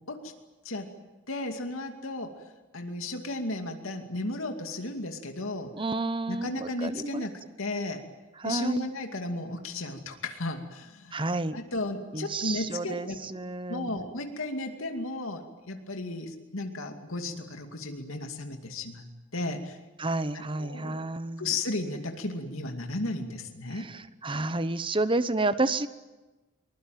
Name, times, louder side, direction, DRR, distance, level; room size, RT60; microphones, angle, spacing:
voice 1, 1.3-2.3 2.7-5.7 6.3-7.3 7.6-8.0 8.4-11.2 11.5-13.3 13.7-19.1 19.3-19.8 20.3-21.0 21.4-23.9, left 2 dB, 75° left, 4 dB, 2.5 m, -34 dB
voice 2, 5.8-7.3 8.4-8.9 11.1-11.6 12.1-14.0 20.0-21.6 23.7-25.9, right 2 dB, 25° right, 13 dB, 0.9 m, -30 dB
23.5 x 21.5 x 9.2 m, 1.2 s
head